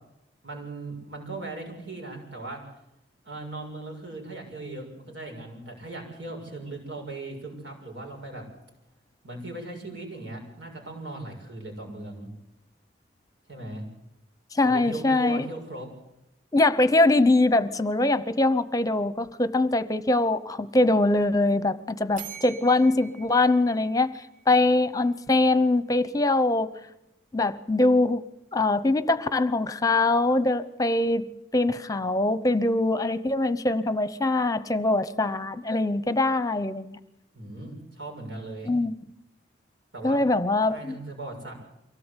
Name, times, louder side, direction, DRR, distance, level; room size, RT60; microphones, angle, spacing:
voice 1, 0.4-2.6 3.2-8.4 9.2-12.3 13.5-13.8 14.7-15.9 37.3-38.7 39.9-40.2 40.7-41.5, right 2 dB, 90° right, 2 dB, 6.8 m, -38 dB
voice 2, 14.5-15.5 16.5-26.7 27.3-28.2 28.5-37.0 38.6-38.9 40.0-41.0, left 2 dB, 20° left, 14 dB, 0.8 m, -23 dB
sound 1, 22.2-24.9, right 7 dB, 45° right, 3.0 m, -45 dB
24.5 x 17.0 x 8.2 m, 0.86 s
head